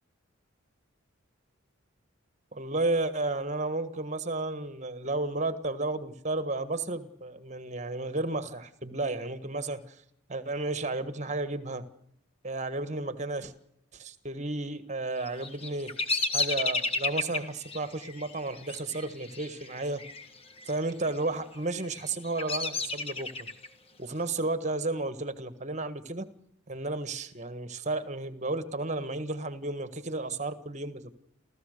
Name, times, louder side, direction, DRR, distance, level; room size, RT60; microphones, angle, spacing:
voice 1, 2.5-10.0 10.3-11.8 12.4-13.5 13.9-20.0 20.7-23.5 24.0-26.3 26.7-31.1, right 2 dB, 35° right, 12 dB, 1.5 m, -33 dB
Bird vocalization bird call bird song, 15.2-20.3 20.5-21.1 21.7-23.7, left 3 dB, 25° left, 1.6 m, -32 dB
28.5 x 14.5 x 6.6 m, 0.75 s
head